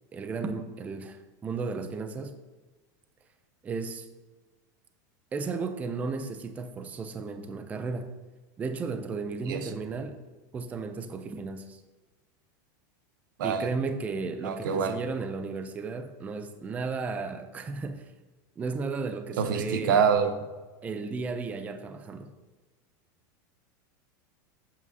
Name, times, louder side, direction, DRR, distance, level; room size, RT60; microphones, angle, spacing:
voice 1, 0.1-2.4 3.6-4.1 5.3-8.1 8.6-10.2 10.5-11.8 13.4-18.1 18.6-20.0 20.8-22.3, right 4 dB, 15° right, 8 dB, 0.4 m, -34 dB
voice 2, 14.4-15.0 19.4-20.4, right 6 dB, 85° right, 9 dB, 0.8 m, -25 dB
8.4 x 7.1 x 2.7 m, 1.2 s
supercardioid pair, 155°, 11 cm